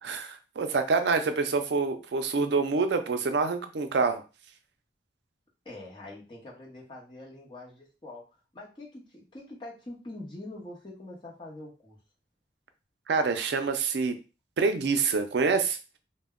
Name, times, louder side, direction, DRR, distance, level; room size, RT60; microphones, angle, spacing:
voice 1, 0.0-4.2 13.1-14.2 14.6-16.0, right 4 dB, 75° right, 7 dB, 0.4 m, -26 dB
voice 2, 5.6-8.2 8.5-12.0, left 2 dB, 25° left, -4 dB, 0.8 m, -44 dB
2.1 x 2.1 x 3.5 m, 0.31 s
head